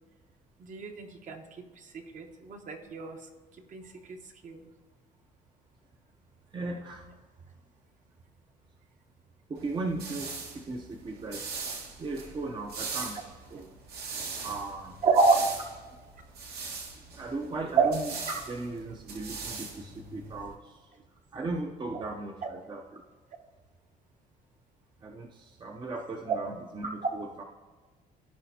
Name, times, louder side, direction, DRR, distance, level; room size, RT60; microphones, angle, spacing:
voice 1, 0.6-1.6 1.9-3.2 3.7-4.2 4.4-4.7 15.0-15.4 17.8-17.9 26.3-26.4, right 4 dB, 50° right, 4 dB, 1.1 m, -27 dB
voice 2, 6.5-7.1 9.5-11.4 12.0-13.7 14.4-14.9 17.1-20.9 21.3-23.0 25.0-27.4, right 3 dB, 25° right, 2 dB, 0.6 m, -37 dB
sound 1, 9.6-20.5, right 4 dB, 70° right, 1.6 m, -41 dB
15.0 x 5.0 x 2.8 m, 1.4 s
cardioid pair, 110°, 17 cm